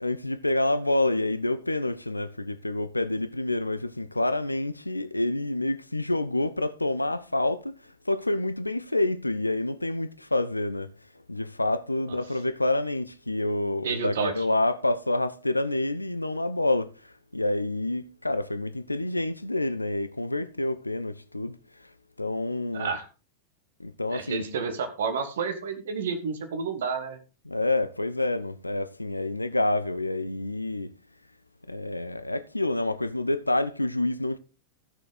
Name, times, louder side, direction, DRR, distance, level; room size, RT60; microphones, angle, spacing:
voice 1, 0.0-10.9 11.3-21.6 22.2-22.9 23.8-24.4 27.5-30.9 31.7-34.4, left 2 dB, 85° left, 0.5 m, -28 dB
voice 2, 13.8-14.5 22.7-23.1 24.1-27.2, right 5 dB, 60° right, 1.7 m, -30 dB
14.0 x 6.6 x 4.0 m
figure-of-eight pair, 90°, 0 cm